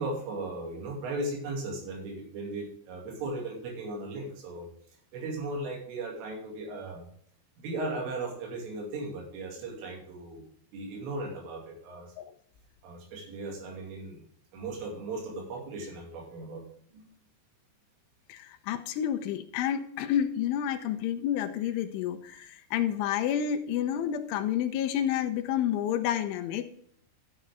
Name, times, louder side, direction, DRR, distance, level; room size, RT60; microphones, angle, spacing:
voice 1, 0.0-4.7 5.1-7.1 7.6-10.4 10.7-12.1 12.8-14.2 14.5-16.7 16.9-17.1 20.8-20.9 22.3-22.5, right 2 dB, 80° right, 0 dB, 5.1 m, -37 dB
voice 2, 18.3-26.7, left 10 dB, 85° left, 7 dB, 3.1 m, -29 dB
13.0 x 7.4 x 3.5 m, 0.63 s
omnidirectional pair, 5.6 m